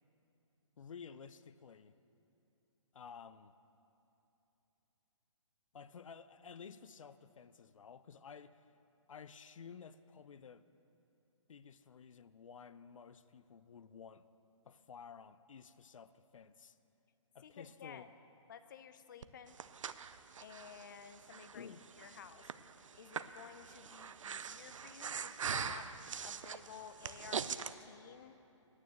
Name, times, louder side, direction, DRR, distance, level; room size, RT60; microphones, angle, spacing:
voice 1, 0.8-2.0 2.9-3.6 5.7-8.6 9.1-10.6 11.5-14.3 14.6-16.8 17.3-18.1 21.5-21.9, left 6 dB, 85° left, 14 dB, 0.5 m, -53 dB
voice 2, 17.4-18.1 18.5-19.6 20.4-21.7 22.0-22.5 23.0-25.9 26.2-28.4, left 8 dB, 40° left, 11 dB, 0.5 m, -53 dB
Breathing, 19.2-27.7, right 7 dB, 80° right, 0.5 m, -43 dB
9.5 x 9.4 x 7.7 m, 2.9 s
hypercardioid pair, 165°, 16 cm